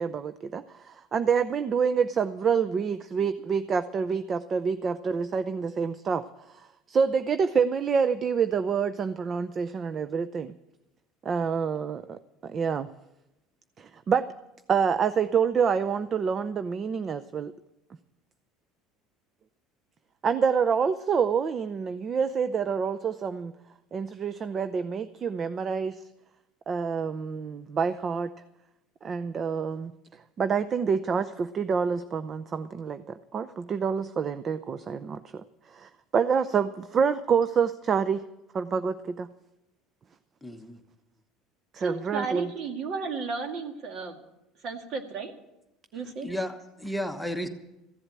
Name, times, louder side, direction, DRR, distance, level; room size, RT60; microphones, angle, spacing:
voice 1, 0.0-10.5 11.2-12.9 13.8-14.3 14.7-17.5 20.2-23.5 23.9-26.0 26.7-28.3 29.0-29.9 30.4-38.2 38.5-39.3 41.7-42.5, right 6 dB, 35° right, 13 dB, 0.5 m, -27 dB
voice 2, 40.4-40.8 46.2-47.5, equal, ahead, 5 dB, 1.2 m, -33 dB
voice 3, 41.8-44.2 44.6-45.3 45.9-46.3, right 4 dB, 55° right, 6 dB, 2.0 m, -33 dB
15.0 x 7.8 x 8.9 m, 0.93 s
supercardioid pair, 110°, 0 cm